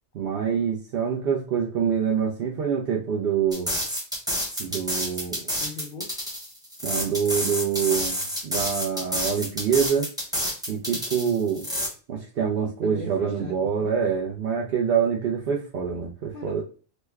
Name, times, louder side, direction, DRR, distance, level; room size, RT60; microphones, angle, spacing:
voice 1, 0.1-3.7 4.6-5.4 6.8-10.1 10.7-11.7 12.1-16.6, right 7 dB, 60° right, -2 dB, 0.7 m, -26 dB
sound 1, 3.5-11.9, equal, 5° right, 0.7 m, -29 dB
voice 2, 5.6-6.1 12.8-13.9 16.3-16.6, left 2 dB, 55° left, 1 dB, 0.6 m, -39 dB
3.1 x 2.2 x 3.4 m, 0.36 s
omnidirectional pair, 1.4 m